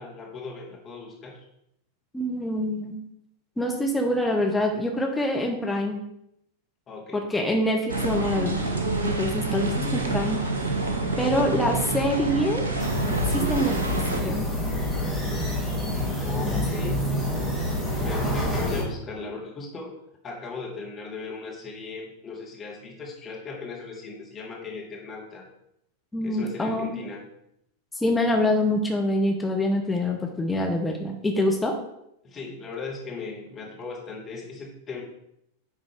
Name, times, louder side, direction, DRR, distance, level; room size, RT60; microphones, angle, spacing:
voice 1, 0.0-1.5 6.9-7.3 9.4-9.8 16.2-17.1 18.0-20.0 20.2-25.5 26.2-27.3 32.2-35.0, left 4 dB, 25° left, -2 dB, 2.2 m, -37 dB
voice 2, 2.1-3.0 3.6-6.0 7.1-8.6 9.0-10.4 11.2-12.6 13.3-13.8 14.2-14.5 16.4-16.6 26.1-27.0 27.9-31.7, left 1 dB, 10° left, 1 dB, 0.9 m, -25 dB
sound 1, 7.9-14.2, right 3 dB, 70° right, 1.3 m, -27 dB
sound 2, 12.8-18.8, left 1 dB, 10° right, 2.5 m, -27 dB
9.7 x 3.8 x 4.7 m, 0.77 s
figure-of-eight pair, 90°, 0 cm